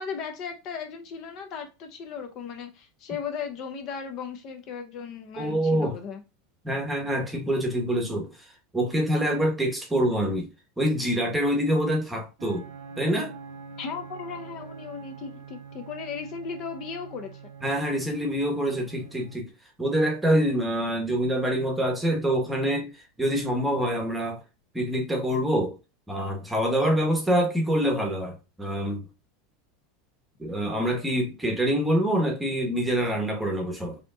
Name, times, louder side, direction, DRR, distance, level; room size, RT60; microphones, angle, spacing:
voice 1, 0.0-6.2 13.8-17.4, left 6 dB, 45° left, 0.6 m, -36 dB
voice 2, 5.4-5.9 6.6-8.3 8.7-10.5 10.8-12.6 13.0-13.3 17.6-19.5 19.8-22.9 23.2-24.4 24.7-25.7 26.1-29.0 30.4-34.0, equal, 5° right, 1.0 m, -25 dB
sound 1, 12.4-19.4, right 6 dB, 65° right, 0.7 m, -44 dB
5.0 x 2.9 x 2.2 m
supercardioid pair, 140°, 0 cm